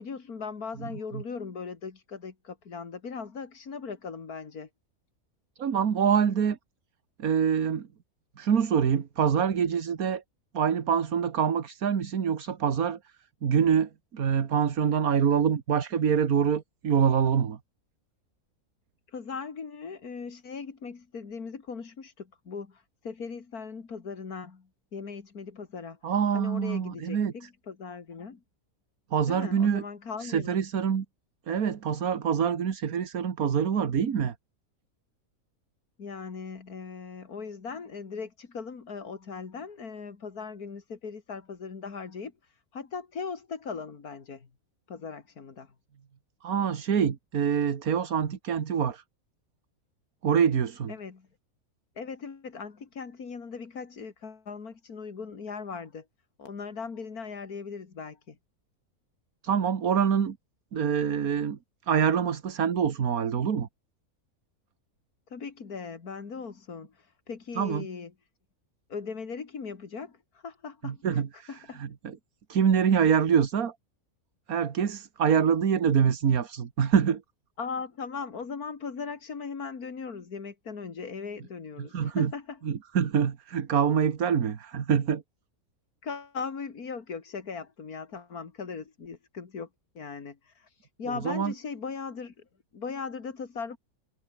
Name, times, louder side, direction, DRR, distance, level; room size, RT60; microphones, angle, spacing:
voice 1, 0.0-4.7 19.1-26.0 26.3-28.4 29.3-30.6 36.0-42.3 42.7-44.5 44.9-45.7 50.9-51.3 52.0-56.1 56.4-58.4 65.3-66.9 67.3-68.1 68.9-71.2 71.5-71.8 77.6-82.6 86.0-89.7 89.9-90.5 91.0-92.5 92.7-93.8, left 5 dB, 85° left, 2.8 m, -39 dB
voice 2, 5.6-6.6 7.2-7.9 8.4-10.2 10.5-13.0 13.4-17.6 26.0-27.5 29.1-29.8 30.2-31.1 31.5-34.3 46.4-49.0 50.2-50.9 59.4-60.4 60.7-61.6 61.9-63.7 67.6-67.9 70.8-72.2 72.5-73.7 74.5-77.2 81.8-82.3 82.7-85.2 91.2-91.5, right 7 dB, 75° right, 1.9 m, -25 dB
omnidirectional pair, 1.5 m